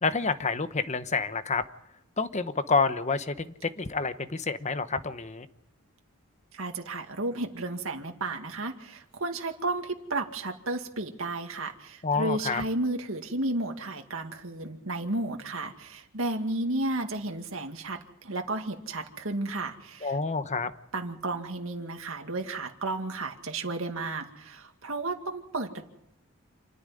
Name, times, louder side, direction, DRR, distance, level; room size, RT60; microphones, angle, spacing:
voice 1, 0.0-1.6 2.2-5.5 12.0-12.6 20.0-20.7, left 4 dB, 35° left, 11 dB, 1.0 m, -28 dB
voice 2, 6.5-20.2 20.9-25.8, right 2 dB, 70° right, 4 dB, 2.2 m, -33 dB
28.0 x 10.5 x 9.9 m, 0.91 s
head